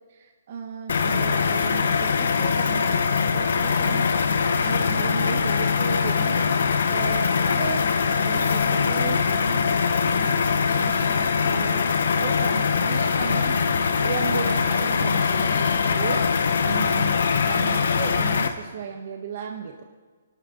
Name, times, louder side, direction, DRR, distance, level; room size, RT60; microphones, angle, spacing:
voice 1, 0.1-3.0 3.3-4.1 4.6-16.2 16.6-17.2 17.4-19.8, right 6 dB, 45° right, 3 dB, 1.3 m, -35 dB
sound 1, 0.9-18.5, left 5 dB, 65° left, 1.6 m, -22 dB
27.5 x 12.5 x 4.1 m, 1.4 s
hypercardioid pair, 165°, 0 cm